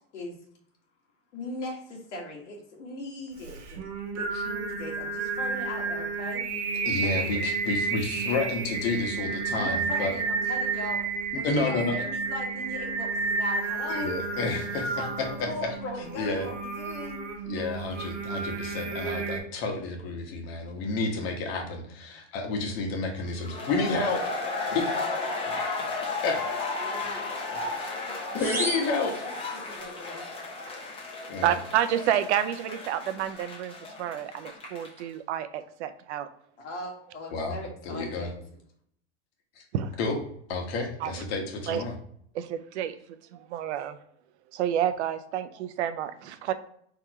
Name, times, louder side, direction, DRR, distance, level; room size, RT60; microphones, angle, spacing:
voice 1, 1.3-3.8 4.2-6.4 7.0-7.5 9.5-11.0 11.3-14.1 14.7-17.3 26.8-27.3 28.0-29.4 29.6-30.2 36.6-38.3, left 2 dB, 90° left, 0 dB, 1.9 m, -39 dB
Singing, 3.4-19.4, right 4 dB, 85° right, 1.5 m, -31 dB
voice 2, 6.8-10.1 11.4-11.9 13.9-14.9 15.2-15.3 16.2-16.5 17.5-24.3 24.7-24.9 26.2-26.4 28.4-29.1 31.3-31.5 37.3-37.6 37.8-38.3 40.0-40.2 40.5-41.9, left 3 dB, 60° left, 2 dB, 1.4 m, -30 dB
sound 1, 23.4-35.0, left 3 dB, 15° left, 0.9 m, -34 dB
sound 2, 28.4-29.9, right 1 dB, 5° right, 0.6 m, -34 dB
voice 3, 31.4-36.3 37.4-37.5 39.7-40.0 41.0-41.2 41.7-41.8 42.3-42.9 43.3-44.0 44.5-46.5, right 10 dB, 70° right, 10 dB, 0.7 m, -29 dB
4.5 x 3.8 x 3.0 m, 0.67 s
supercardioid pair, 145°, 35 cm